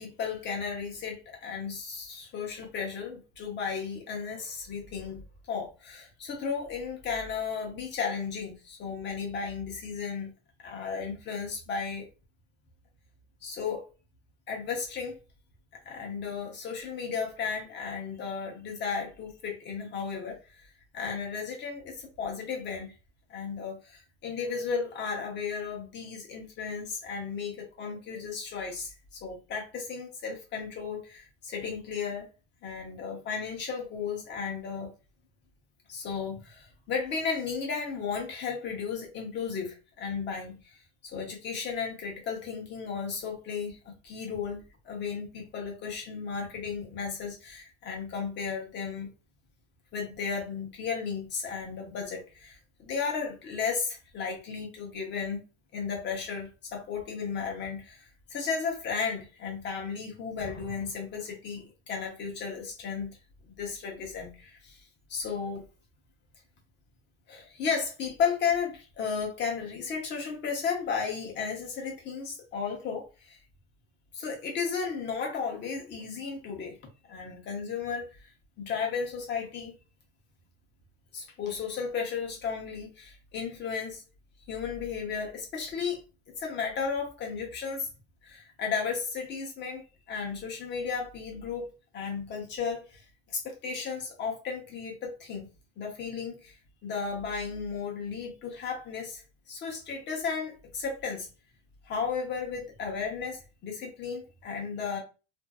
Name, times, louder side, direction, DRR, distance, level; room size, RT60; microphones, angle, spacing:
voice 1, 0.0-5.2 5.5-10.3 10.6-12.1 13.4-13.9 14.5-15.2 15.8-20.7 20.9-22.9 23.3-32.3 32.6-34.9 35.9-49.1 49.9-55.4 55.7-63.2 63.5-64.8 65.1-65.6 67.3-73.4 74.1-76.8 77.1-78.2 78.6-79.7 81.1-84.0 84.5-86.0 86.4-87.9 88.2-95.5 95.8-99.2 99.5-101.3 101.9-105.0, left 6 dB, 30° left, 0.8 m, -34 dB
2.6 x 2.4 x 2.3 m
cardioid pair, 155°, 35 cm